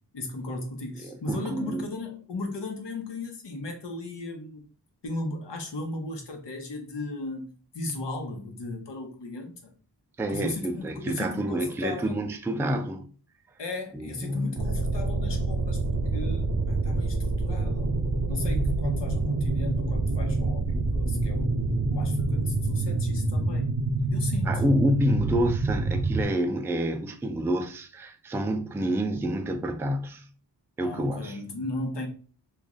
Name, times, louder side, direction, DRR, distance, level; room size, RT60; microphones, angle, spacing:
voice 1, 0.1-4.7 5.0-7.5 7.7-9.7 10.3-12.2 13.6-15.8 16.1-17.9 18.3-21.5 21.9-23.7 24.1-24.6 28.8-29.1 30.8-32.1, left 2 dB, 75° left, 0.9 m, -36 dB
voice 2, 1.0-1.8 10.2-13.1 13.9-14.7 24.5-30.2 30.8-31.4, equal, 5° right, 0.3 m, -28 dB
sound 1, 14.6-26.2, right 2 dB, 40° right, 0.6 m, -26 dB
3.0 x 2.5 x 3.7 m
wide cardioid pair, 80°, 43 cm